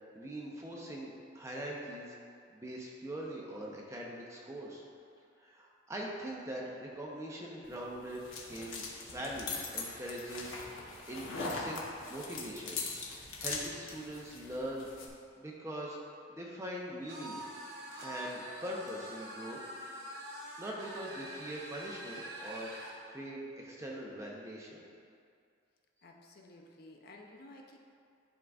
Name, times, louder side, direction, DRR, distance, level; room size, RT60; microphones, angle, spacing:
voice 1, 0.1-2.2 2.5-4.8 5.4-8.8 9.1-10.6 11.1-11.8 12.1-12.8 13.2-14.9 15.4-16.0 16.3-17.4 18.0-19.6 20.6-24.8, right 1 dB, 15° right, -3 dB, 0.6 m, -42 dB
sound 1, 7.6-15.1, left 3 dB, 85° left, 0.9 m, -41 dB
sound 2, 17.1-23.0, right 1 dB, 55° right, 0.9 m, -45 dB
voice 2, 26.0-27.8, left 2 dB, 50° left, 1 dB, 0.5 m, -54 dB
10.5 x 3.8 x 2.3 m, 2.3 s
head